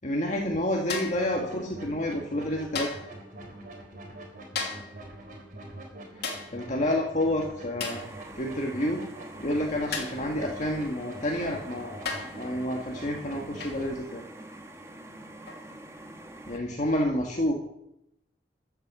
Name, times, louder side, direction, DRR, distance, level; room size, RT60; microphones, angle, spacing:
voice 1, 0.0-2.9 6.5-8.0 8.4-9.0 9.4-11.9 12.4-14.2 16.5-17.5, left 1 dB, 45° left, 0 dB, 1.8 m, -29 dB
sound 1, 0.9-1.3 2.7-3.1 4.5-5.0 6.2-6.6 7.8-8.1 9.9-10.3 11.3-11.4 12.0-12.4 13.6-13.9 15.5-15.7, left 4 dB, 65° left, 2.9 m, -34 dB
sound 2, 1.1-13.9, right 1 dB, 50° right, 4.0 m, -45 dB
sound 3, 7.9-16.6, right 1 dB, 15° right, 1.5 m, -46 dB
14.0 x 7.9 x 7.6 m, 0.80 s
head